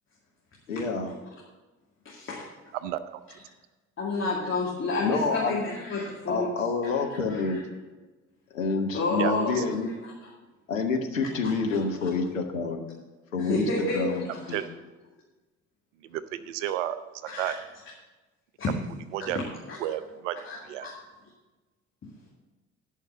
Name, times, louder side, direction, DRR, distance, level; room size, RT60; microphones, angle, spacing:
voice 1, 0.7-1.1 5.0-5.6 6.3-7.6 8.5-9.9 10.7-12.8 13.3-13.7 13.9-14.6, left 4 dB, 80° left, 3 dB, 1.1 m, -28 dB
voice 2, 2.0-2.5 4.0-6.5 6.9-7.0 7.3-7.6 8.9-9.6 10.2-10.3 11.4-11.5 13.4-14.6 17.3-17.5 18.6-18.7 19.2-19.3 19.7-19.8 20.4-20.6, left 3 dB, 30° left, -4 dB, 2.3 m, -30 dB
voice 3, 2.7-3.2 9.2-9.6 14.5-14.7 16.0-17.6 19.1-19.4 19.8-20.4 20.6-20.9, right 12 dB, 70° right, 13 dB, 0.7 m, -32 dB
11.0 x 5.8 x 7.4 m, 1.2 s
figure-of-eight pair, 50°, 39 cm